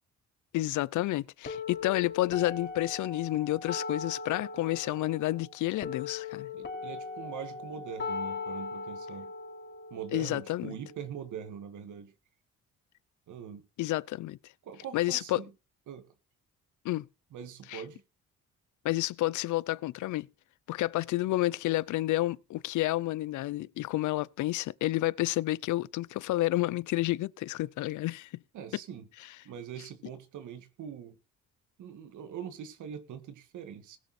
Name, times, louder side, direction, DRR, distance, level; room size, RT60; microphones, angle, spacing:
voice 1, 0.5-6.5 10.1-10.8 13.8-14.4 14.9-15.4 16.8-17.1 17.7-17.8 18.8-20.3 20.7-28.3, left 17 dB, 75° left, 0.6 m, -30 dB
sound 1, 1.5-11.5, left 4 dB, 40° left, 4.3 m, -40 dB
voice 2, 6.5-9.3 9.9-12.1 13.3-13.6 14.6-15.5 15.9-16.1 17.3-18.0 28.5-29.1 29.4-31.2 31.8-34.0, right 8 dB, 75° right, 2.0 m, -42 dB
19.5 x 6.7 x 4.3 m
cardioid pair, 90°, 30 cm